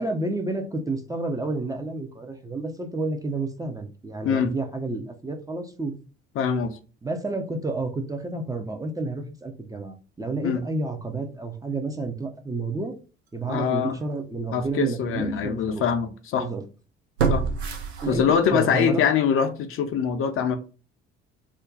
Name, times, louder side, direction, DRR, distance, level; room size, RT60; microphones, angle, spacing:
voice 1, 0.0-5.9 7.0-13.0 13.3-15.9 16.4-16.6 18.0-19.0, right 2 dB, 10° right, 0.5 m, -30 dB
voice 2, 6.4-6.8 10.4-10.6 13.5-13.9 14.5-16.5 17.3-17.4 18.1-20.6, left 7 dB, 45° left, 0.5 m, -23 dB
sound 1, 13.9-14.0 14.6-14.7 17.2-18.6 19.0-19.1, right 5 dB, 85° right, 0.5 m, -26 dB
2.5 x 2.2 x 3.7 m
figure-of-eight pair, 55°, 31 cm